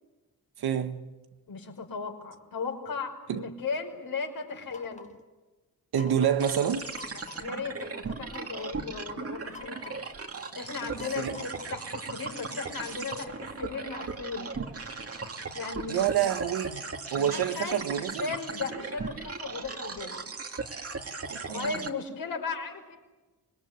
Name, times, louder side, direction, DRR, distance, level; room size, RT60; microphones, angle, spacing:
voice 1, 0.6-1.1 3.3-3.4 5.9-6.9 11.2-11.4 15.9-16.8 17.1-18.3 21.3-21.7, right 9 dB, 90° right, 1.7 m, -27 dB
voice 2, 1.5-5.1 7.4-9.9 10.5-14.6 15.5-16.2 17.1-20.3 21.5-23.0, left 4 dB, 65° left, 5.6 m, -36 dB
sound 1, 4.7-5.2 5.9-6.5 6.9-7.6 8.3-8.8 9.5-10.2 11.0-11.8, left 5 dB, 20° left, 1.8 m, -48 dB
sound 2, 6.4-21.9, right 4 dB, 40° right, 2.3 m, -38 dB
25.5 x 21.0 x 9.8 m
cardioid pair, 95°, 37 cm